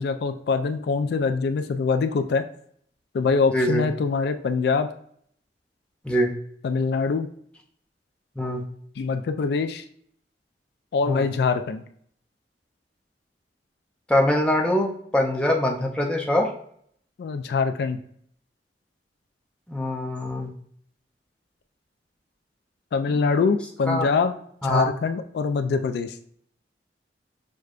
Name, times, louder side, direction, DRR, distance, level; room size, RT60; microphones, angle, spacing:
voice 1, 0.0-2.5 3.1-4.9 6.6-7.3 9.0-9.8 10.9-11.8 17.2-18.0 22.9-24.3 24.6-26.2, left 4 dB, 65° left, 8 dB, 0.3 m, -24 dB
voice 2, 3.5-3.8 6.0-6.3 8.4-8.6 11.0-11.3 14.1-16.5 19.7-20.5 23.1-23.4 23.9-24.1 24.6-24.9, left 1 dB, 5° left, 0 dB, 0.5 m, -23 dB
6.2 x 2.2 x 2.4 m, 0.64 s
head